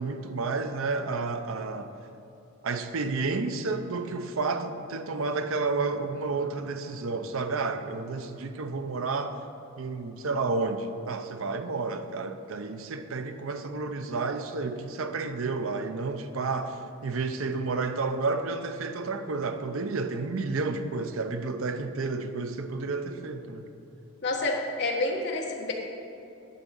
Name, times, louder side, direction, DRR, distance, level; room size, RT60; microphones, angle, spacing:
voice 1, 0.0-1.9 2.6-9.4 9.8-23.7, right 3 dB, 70° right, 0.6 m, -31 dB
voice 2, 24.2-25.7, left 2 dB, 50° left, 1.3 m, -28 dB
11.0 x 4.1 x 7.5 m
head